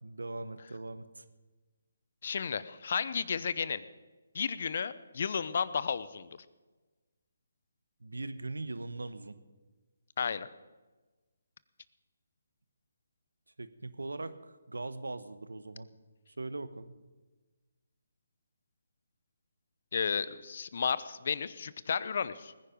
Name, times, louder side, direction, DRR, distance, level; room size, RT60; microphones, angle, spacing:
voice 1, 0.0-1.2 8.0-9.4 13.6-15.9 16.4-17.0, right 2 dB, 85° right, 13 dB, 1.1 m, -40 dB
voice 2, 2.2-3.8 4.3-6.3 10.2-10.5 19.9-22.5, left 6 dB, 55° left, 16 dB, 0.7 m, -33 dB
20.0 x 10.0 x 5.2 m, 1.2 s
figure-of-eight pair, 150°, 0 cm